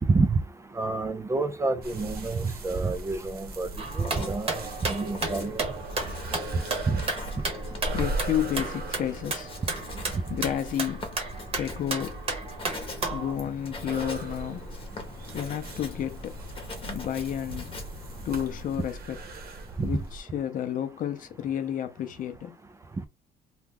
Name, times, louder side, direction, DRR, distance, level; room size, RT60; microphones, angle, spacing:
voice 1, 0.1-0.4 0.8-3.7 4.0-4.5 4.8-5.6 6.9-7.0 19.8-19.9, right 3 dB, 15° right, 0.4 m, -27 dB
sound 1, 1.8-20.2, right 2 dB, 60° right, 1.0 m, -39 dB
Writing, 3.4-18.8, left 3 dB, 30° left, 1.0 m, -44 dB
sound 2, 3.8-13.3, right 3 dB, 35° right, 1.0 m, -34 dB
voice 2, 7.9-9.6 10.3-12.2 13.1-16.4 16.7-17.7 18.2-19.2 19.8-22.6, left 10 dB, 50° left, 0.6 m, -32 dB
2.8 x 2.3 x 3.5 m
cardioid pair, 140°, 17 cm